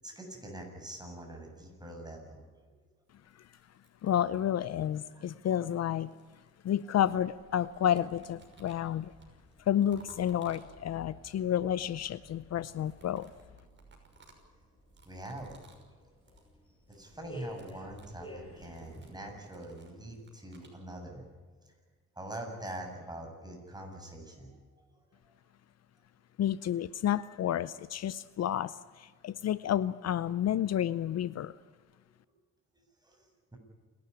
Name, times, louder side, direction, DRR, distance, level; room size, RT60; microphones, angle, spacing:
voice 1, 0.0-2.4 5.1-5.6 15.0-15.6 16.0-16.1 16.9-21.2 22.2-24.9 25.3-25.4 33.0-33.6, right 1 dB, 15° right, 2 dB, 7.8 m, -44 dB
sound 1, 3.1-4.7 5.6-7.2 7.5-11.1 12.6-15.9 16.2-16.5 16.8-17.1 17.4-20.8, right 3 dB, 40° right, 6.0 m, -60 dB
voice 2, 4.0-6.1 6.6-9.1 9.6-13.3 26.4-31.6, left 10 dB, 60° left, 17 dB, 0.6 m, -30 dB
sound 2, 7.0-19.5, left 2 dB, 15° left, 7.2 m, -53 dB
28.0 x 13.0 x 10.0 m, 1.5 s
cardioid pair, 90°, 30 cm